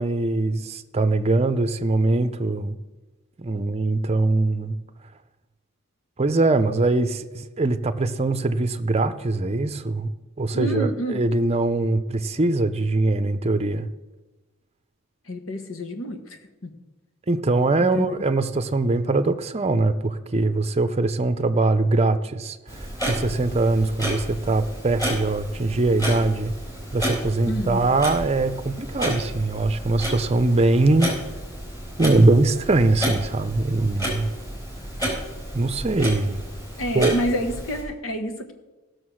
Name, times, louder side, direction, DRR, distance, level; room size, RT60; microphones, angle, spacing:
voice 1, 0.0-2.7 3.4-4.8 6.2-10.1 10.4-13.9 17.3-26.5 26.9-31.1 32.0-34.3 35.5-36.4 36.9-37.1, right 2 dB, 30° right, 9 dB, 0.6 m, -22 dB
voice 2, 10.5-11.2 15.3-16.7 17.8-18.2 27.5-27.9 36.8-38.5, equal, 70° left, 6 dB, 1.5 m, -29 dB
Clock, 22.7-37.8, equal, 20° left, 4.0 m, -31 dB
16.0 x 6.5 x 6.3 m, 1.1 s
head